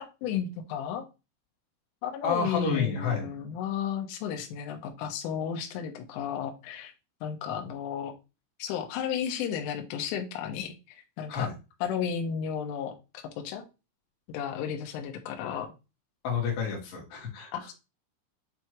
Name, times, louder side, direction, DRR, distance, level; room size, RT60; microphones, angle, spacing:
voice 1, 0.2-1.0 2.0-6.9 7.2-8.1 8.6-11.5 11.8-13.6 14.3-15.7 17.5-17.7, left 8 dB, 80° left, 3 dB, 3.5 m, -33 dB
voice 2, 2.2-3.3 11.3-11.5 16.2-17.5, left 5 dB, 55° left, -1 dB, 3.6 m, -29 dB
8.9 x 3.5 x 3.1 m, 0.28 s
omnidirectional pair, 5.8 m